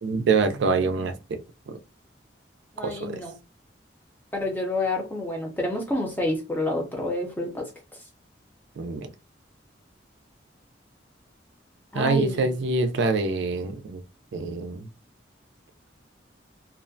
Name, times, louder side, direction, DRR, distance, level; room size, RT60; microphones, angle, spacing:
voice 1, 0.0-1.8 2.8-3.2 8.8-9.1 11.9-14.0 14.3-14.9, right 4 dB, 70° right, 0.4 m, -25 dB
voice 2, 2.8-3.3 4.3-7.7 11.9-12.6, left 1 dB, 10° left, 0.5 m, -28 dB
2.4 x 2.1 x 2.5 m
head